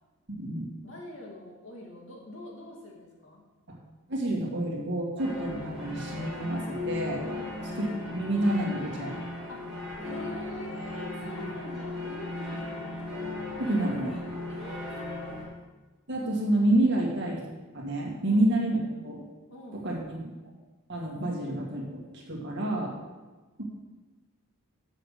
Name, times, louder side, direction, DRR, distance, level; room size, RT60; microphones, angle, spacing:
voice 1, 0.3-0.7 4.1-7.2 7.8-9.1 11.2-11.5 13.6-14.2 16.1-17.4 17.7-19.2 19.7-20.2 20.9-22.9 23.6-23.7, right 1 dB, 50° right, -2 dB, 2.1 m, -28 dB
voice 2, 0.8-3.4 7.2-7.5 9.5-9.6 10.0-12.9 14.5-15.5 18.2-18.5 19.5-19.8, left 1 dB, 60° left, -1 dB, 2.0 m, -44 dB
sound 1, 5.2-15.4, left 2 dB, ahead, 2.4 m, -37 dB
7.5 x 6.6 x 6.7 m, 1.2 s
head